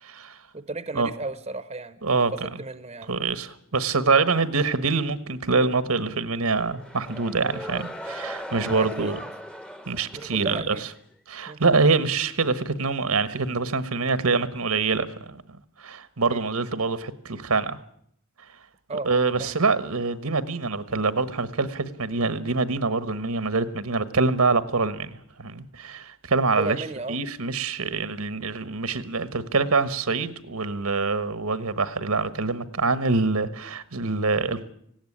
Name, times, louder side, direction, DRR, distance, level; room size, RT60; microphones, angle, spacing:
voice 1, 0.0-0.4 0.9-1.1 2.0-2.5 3.1-9.2 9.9-10.7 11.3-15.4 15.8-17.8 19.0-26.8 27.1-34.7, right 4 dB, 80° right, 1.3 m, -25 dB
voice 2, 0.5-3.1 8.7-9.2 10.1-10.8 11.5-11.6 16.3-16.4 18.9-19.1 19.4-19.6 26.6-27.2, right 3 dB, 30° right, 0.8 m, -34 dB
sound 1, 6.5-11.0, equal, 5° left, 0.8 m, -38 dB
18.5 x 16.5 x 10.0 m
head